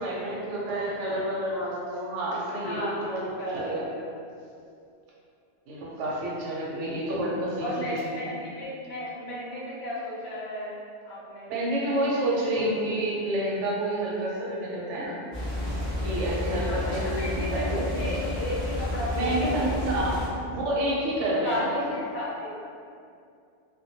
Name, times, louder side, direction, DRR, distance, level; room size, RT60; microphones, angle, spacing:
voice 1, 0.0-3.9 5.7-7.9 8.2-8.3 11.5-15.2 16.0-18.1 19.1-20.0 20.5-21.9, right 1 dB, 85° right, -4 dB, 0.9 m, -29 dB
voice 2, 2.5-4.0 7.6-10.8 11.0-11.5 16.5-20.1 21.4-22.5, left 1 dB, 70° left, -7 dB, 0.9 m, -35 dB
sound 1, 15.3-20.3, left 1 dB, 15° right, 0.9 m, -31 dB
2.2 x 2.2 x 2.7 m, 2.4 s
omnidirectional pair, 1.2 m